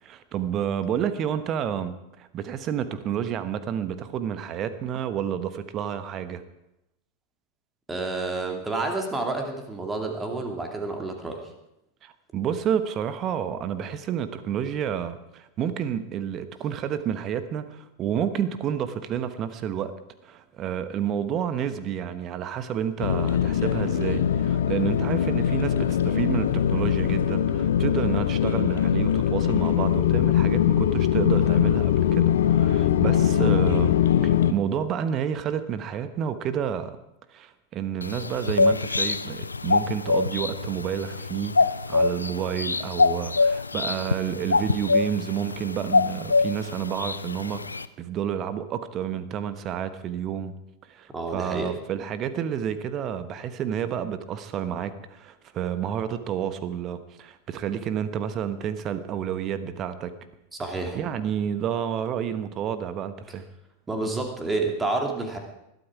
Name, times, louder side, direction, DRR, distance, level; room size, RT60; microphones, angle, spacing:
voice 1, 0.0-6.4 12.0-19.9 20.2-34.0 34.2-37.0 37.3-50.5 50.9-60.1 60.9-63.4, right 9 dB, 30° right, 12 dB, 1.1 m, -30 dB
voice 2, 7.9-11.5 51.1-51.8 60.5-61.0 63.9-65.4, right 3 dB, 15° right, 3 dB, 2.5 m, -29 dB
sound 1, 23.0-34.5, left 10 dB, 60° left, 0.9 m, -22 dB
sound 2, 38.0-47.9, left 3 dB, 80° left, 0.5 m, -25 dB
21.0 x 12.0 x 4.8 m, 0.87 s
figure-of-eight pair, 90°, 0 cm